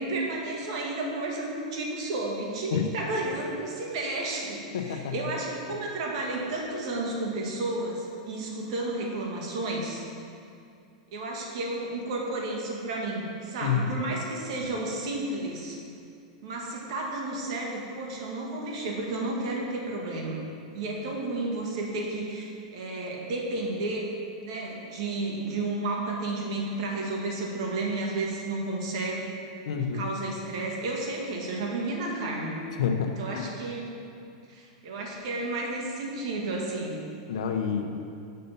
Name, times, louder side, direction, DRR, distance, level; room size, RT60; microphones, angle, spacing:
voice 1, 0.0-10.0 11.1-15.8 16.4-20.4 20.7-24.1 24.4-29.3 29.9-32.6 33.2-33.9 34.5-37.0, right 2 dB, 65° right, -1 dB, 1.7 m, -32 dB
voice 2, 4.7-5.3 13.6-14.0 29.6-30.0 32.7-33.5 37.3-38.0, left 7 dB, 80° left, 3 dB, 0.7 m, -29 dB
6.7 x 6.5 x 5.6 m, 2.4 s
supercardioid pair, 140°, 3 cm